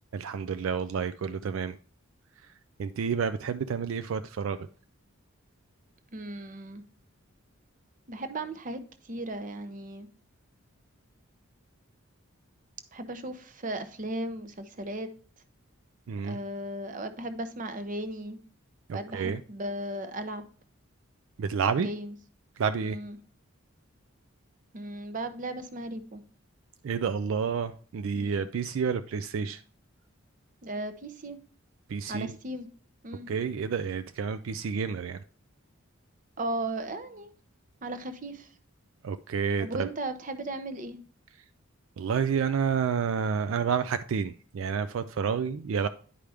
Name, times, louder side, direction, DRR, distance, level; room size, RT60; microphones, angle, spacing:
voice 1, 0.1-1.8 2.8-4.7 16.1-16.4 18.9-19.4 21.4-21.9 22.6-23.0 26.8-29.6 31.9-32.4 33.3-35.2 39.0-39.9 42.0-45.9, right 6 dB, 70° right, 0.3 m, -29 dB
voice 2, 6.1-6.8 8.1-10.1 12.9-15.1 16.2-18.4 18.9-20.4 21.8-22.1 22.8-23.2 24.7-26.2 28.1-28.5 30.6-31.4 32.1-32.7 33.0-33.3 36.4-37.3 37.8-38.5 39.6-41.0, right 1 dB, 40° right, 0.7 m, -36 dB
10.0 x 4.9 x 3.4 m
head